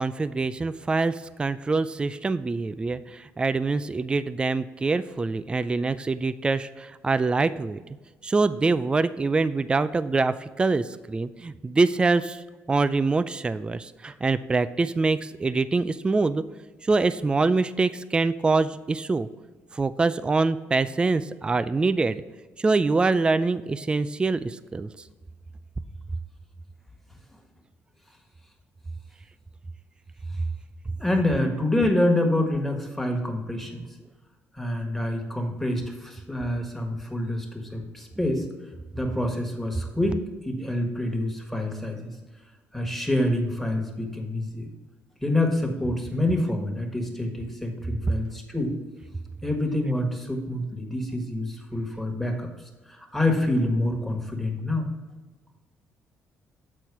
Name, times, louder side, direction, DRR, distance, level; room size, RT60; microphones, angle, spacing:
voice 1, 0.0-7.8 8.2-16.4 16.8-19.3 19.7-22.2 22.6-24.9, right 3 dB, 20° right, 13 dB, 0.3 m, -24 dB
voice 2, 31.0-33.9 34.5-38.4 38.9-42.1 42.7-44.7 45.2-48.7 49.4-52.5 52.9-54.9, left 1 dB, 5° left, 1 dB, 1.6 m, -27 dB
8.1 x 4.4 x 4.7 m, 1.3 s
cardioid pair, 95°, 5 cm